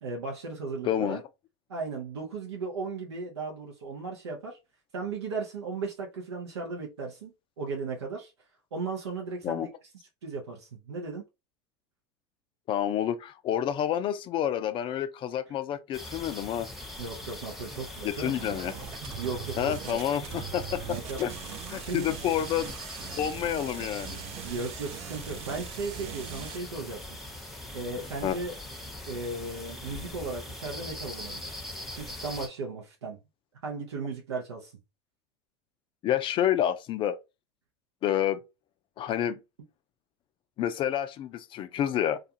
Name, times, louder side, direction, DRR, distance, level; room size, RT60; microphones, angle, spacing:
voice 1, 0.0-1.2 1.7-4.6 4.9-7.3 7.6-8.3 8.7-9.7 10.2-11.2 17.0-18.3 19.2-20.0 20.9-21.2 21.8-22.2 24.4-27.0 27.7-28.6 29.1-31.5 32.0-33.2 33.6-34.7, right 4 dB, 85° right, 0.7 m, -36 dB
voice 2, 0.8-1.2 9.4-9.7 12.7-16.7 18.0-18.7 19.6-20.8 21.2-21.3 21.7-22.7 23.2-24.2 28.2-28.4 36.0-37.2 38.0-38.4 39.0-39.4 40.6-42.2, left 10 dB, 40° left, 0.4 m, -29 dB
sound 1, 15.9-32.5, left 1 dB, ahead, 0.8 m, -42 dB
sound 2, 18.3-26.6, right 12 dB, 45° right, 0.4 m, -41 dB
2.4 x 2.3 x 2.7 m
hypercardioid pair, 85°, 14 cm